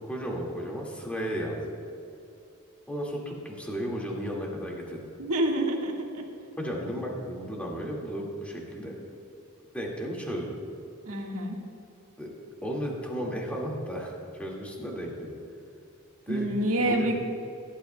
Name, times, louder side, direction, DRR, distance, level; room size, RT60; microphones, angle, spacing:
voice 1, 0.1-1.7 2.9-5.0 6.6-9.0 9.7-10.5 12.2-12.3 12.6-15.4 16.3-16.5 16.8-17.1, equal, 5° left, -3 dB, 1.9 m, -34 dB
voice 2, 5.2-6.2 11.0-11.6 16.3-17.2, right 1 dB, 75° right, 0 dB, 1.6 m, -27 dB
18.0 x 12.0 x 2.2 m, 2.6 s
head